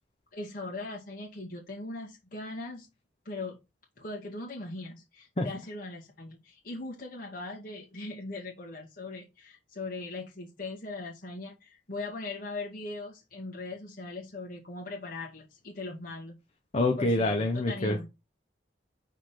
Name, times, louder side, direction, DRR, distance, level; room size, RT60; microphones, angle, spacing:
voice 1, 0.3-2.9 3.3-3.6 4.0-16.3 17.0-18.1, left 2 dB, 50° left, -2 dB, 2.1 m, -40 dB
voice 2, 16.7-18.1, left 2 dB, 35° left, 1 dB, 1.1 m, -26 dB
5.2 x 4.0 x 5.8 m, 0.24 s
head